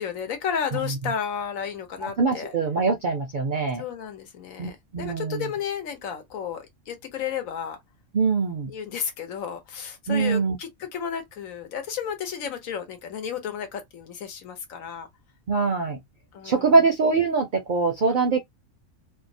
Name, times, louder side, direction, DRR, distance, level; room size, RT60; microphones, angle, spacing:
voice 1, 0.0-2.5 3.8-7.8 8.7-15.1 16.3-16.8 18.1-18.3, left 7 dB, 90° left, 1.2 m, -33 dB
voice 2, 2.0-3.8 4.6-5.5 8.1-8.7 10.1-10.6 15.5-16.0 16.4-18.4, right 4 dB, 60° right, 0.5 m, -23 dB
2.7 x 2.0 x 2.6 m
omnidirectional pair, 1.4 m